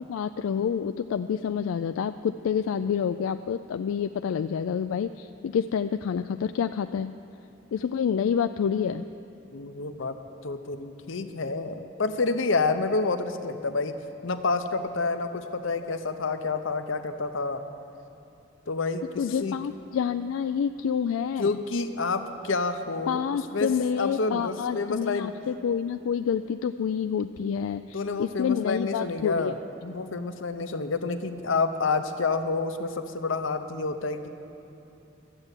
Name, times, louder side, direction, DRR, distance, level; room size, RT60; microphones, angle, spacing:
voice 1, 0.0-7.1 7.7-9.0 19.2-21.5 23.1-29.5, left 7 dB, 90° left, 9 dB, 0.3 m, -28 dB
voice 2, 9.5-10.2 10.4-14.0 14.2-17.6 18.7-19.6 21.4-23.2 23.5-25.3 27.9-34.3, left 3 dB, 75° left, 9 dB, 0.7 m, -29 dB
12.5 x 8.0 x 8.9 m, 2.8 s
head